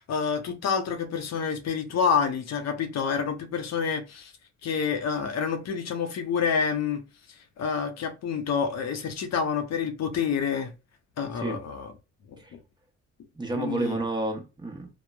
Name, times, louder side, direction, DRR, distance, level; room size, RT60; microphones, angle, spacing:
voice 1, 0.0-4.3 4.6-7.0 7.6-10.7 11.2-11.9 12.3-12.6 13.5-14.0, left 6 dB, 60° left, 0.6 m, -28 dB
voice 2, 13.3-14.9, right 2 dB, 15° right, 0.8 m, -30 dB
2.9 x 2.1 x 2.2 m
cardioid pair, 90°, 30 cm